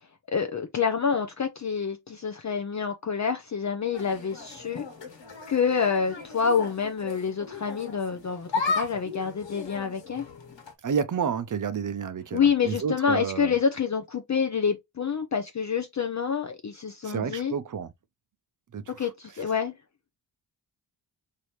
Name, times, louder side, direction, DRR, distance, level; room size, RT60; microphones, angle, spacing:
voice 1, 0.3-4.8 5.5-10.2 12.3-17.5 19.0-19.7, left 6 dB, 40° left, 0.6 m, -27 dB
sound 1, 3.9-10.7, left 4 dB, 75° left, 1.6 m, -35 dB
voice 2, 10.8-13.5 17.0-17.9 18.7-19.1, right 7 dB, 45° right, 0.6 m, -30 dB
4.7 x 2.8 x 3.1 m
wide cardioid pair, 100°, 44 cm